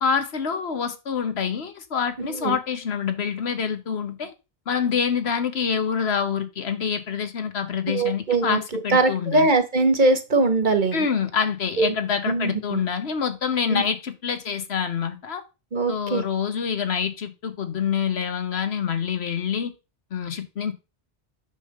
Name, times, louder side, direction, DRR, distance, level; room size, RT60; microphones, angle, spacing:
voice 1, 0.0-4.3 4.7-9.5 10.9-15.4 15.9-19.7 20.1-20.7, left 7 dB, 75° left, 1.3 m, -26 dB
voice 2, 2.2-2.6 7.9-11.0 11.8-11.9 12.3-12.8 13.7-13.8 15.7-16.2, right 3 dB, 45° right, 1.3 m, -22 dB
9.0 x 3.8 x 6.5 m
omnidirectional pair, 1.1 m